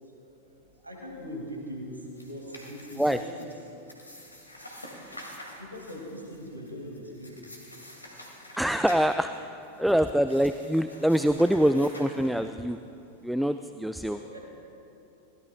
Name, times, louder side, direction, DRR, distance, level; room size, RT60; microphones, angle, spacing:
voice 1, 0.8-3.3 5.1-5.2 5.4-7.6 14.0-14.4, equal, 85° right, 1 dB, 2.1 m, -41 dB
sound 1, 1.9-12.8, left 1 dB, 85° left, 2.2 m, -48 dB
voice 2, 8.6-9.3 9.8-12.8 13.2-14.2, equal, ahead, 9 dB, 0.3 m, -24 dB
22.0 x 16.5 x 2.2 m, 2.8 s
figure-of-eight pair, 90°, 0 cm